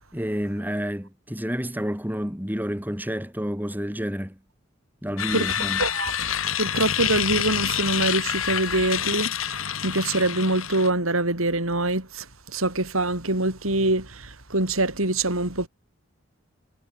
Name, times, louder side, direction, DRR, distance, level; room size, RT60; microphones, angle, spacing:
voice 1, 0.1-4.4 5.0-5.8, equal, 10° right, 4.7 m, -29 dB
sound 1, 5.2-10.9, left 9 dB, 80° left, 4.4 m, -27 dB
voice 2, 5.8-6.1 6.6-9.6 9.8-15.7, right 2 dB, 90° right, 6.5 m, -24 dB
head